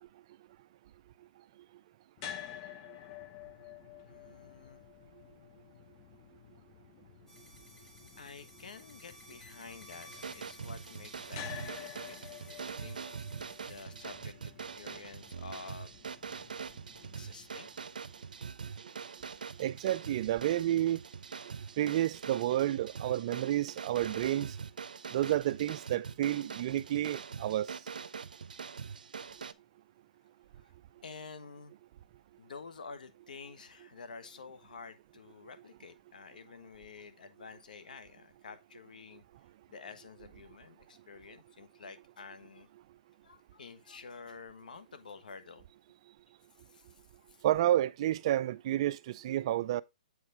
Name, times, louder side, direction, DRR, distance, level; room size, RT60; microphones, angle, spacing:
sound 1, 2.2-18.3, left 10 dB, 35° left, 0.8 m, -51 dB
voice 1, 4.0-4.8 8.2-13.0 13.6-15.9 17.1-17.7 30.5-30.7 31.0-31.7 32.4-39.2 39.7-42.7 43.2-45.6 46.5-47.5, left 5 dB, 75° left, 1.2 m, -50 dB
sound 2, 7.3-13.8, equal, 10° left, 2.0 m, -56 dB
sound 3, 10.1-29.5, right 6 dB, 85° right, 0.6 m, -43 dB
voice 2, 19.6-21.0 21.8-24.5 25.1-27.7 47.4-49.8, right 13 dB, 45° right, 0.4 m, -30 dB
8.0 x 4.8 x 3.5 m
hypercardioid pair, 145°, 4 cm